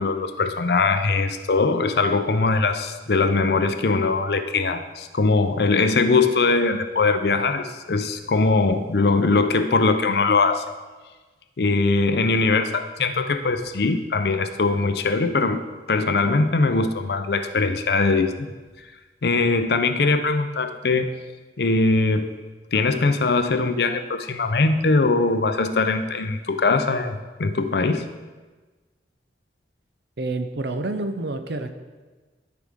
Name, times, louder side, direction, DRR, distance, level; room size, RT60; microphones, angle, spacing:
voice 1, 0.0-10.6 11.6-15.6 15.9-18.5 19.2-21.1 21.6-22.3 22.7-28.1, left 3 dB, 60° left, 8 dB, 0.6 m, -21 dB
voice 2, 30.2-31.7, right 2 dB, 70° right, 8 dB, 0.7 m, -28 dB
14.0 x 4.7 x 3.6 m, 1.3 s
head